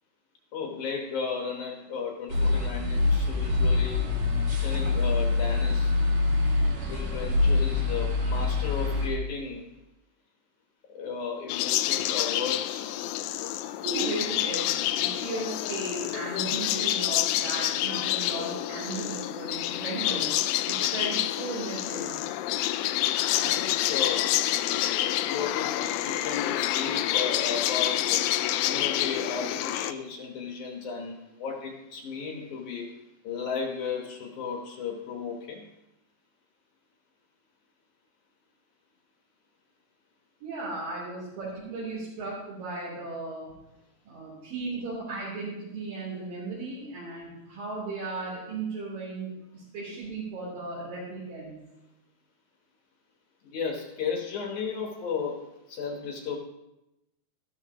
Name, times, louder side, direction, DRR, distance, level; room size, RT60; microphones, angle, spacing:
voice 1, 0.5-4.1 4.5-6.1 6.8-9.7 10.9-12.9 23.4-24.3 25.2-28.2 28.6-33.0 33.2-35.7 53.4-56.4, left 5 dB, 65° left, 1 dB, 2.4 m, -34 dB
sound 1, 2.3-9.1, left 3 dB, 55° right, 2.7 m, -25 dB
sound 2, 11.5-29.9, left 13 dB, 85° left, 2.3 m, -28 dB
voice 2, 13.8-22.2 40.4-43.5 44.0-51.6, right 3 dB, 70° right, -8 dB, 5.1 m, -36 dB
14.0 x 12.5 x 3.0 m, 0.91 s
omnidirectional pair, 4.1 m